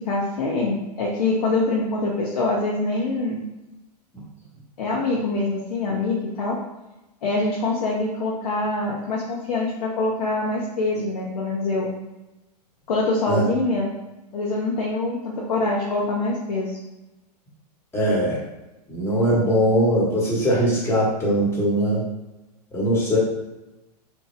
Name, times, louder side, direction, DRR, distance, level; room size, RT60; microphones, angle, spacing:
voice 1, 0.0-3.4 4.8-6.6 7.2-11.9 12.9-13.9 14.3-16.8, left 2 dB, 70° left, -4 dB, 0.7 m, -24 dB
voice 2, 17.9-18.4 18.9-22.0 22.7-23.2, equal, 10° left, -6 dB, 1.2 m, -21 dB
2.9 x 2.2 x 3.1 m, 1.0 s
hypercardioid pair, 105°, 21 cm